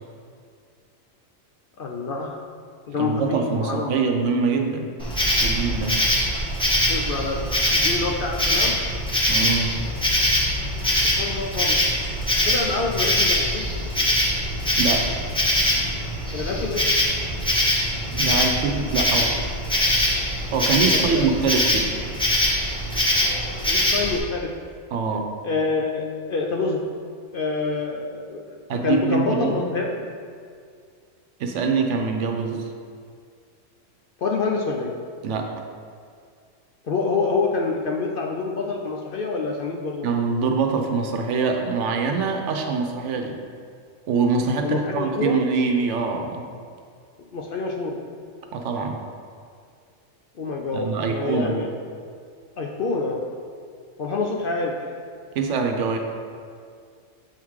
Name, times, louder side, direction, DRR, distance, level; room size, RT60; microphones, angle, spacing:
voice 1, 1.8-2.4 2.9-3.9 6.9-8.8 11.2-11.8 12.5-13.7 16.3-16.8 21.1-21.2 23.7-24.5 25.4-26.8 27.3-28.4 28.8-30.0 34.2-34.9 36.8-40.1 44.6-45.4 47.3-48.0 50.4-51.8 52.6-53.2 54.0-54.8, left 4 dB, 60° left, 0 dB, 0.6 m, -26 dB
voice 2, 2.9-4.9 5.4-6.0 9.3-9.7 14.8-15.2 18.1-19.4 20.5-21.9 24.9-25.3 28.7-29.7 31.4-32.7 35.2-35.5 40.0-43.4 44.1-46.5 48.5-49.0 50.7-51.6 55.3-56.0, right 5 dB, 70° right, 4 dB, 1.0 m, -24 dB
Insect, 5.0-24.2, left 1 dB, 5° left, 1.2 m, -23 dB
7.3 x 3.6 x 4.6 m, 2.2 s
omnidirectional pair, 1.3 m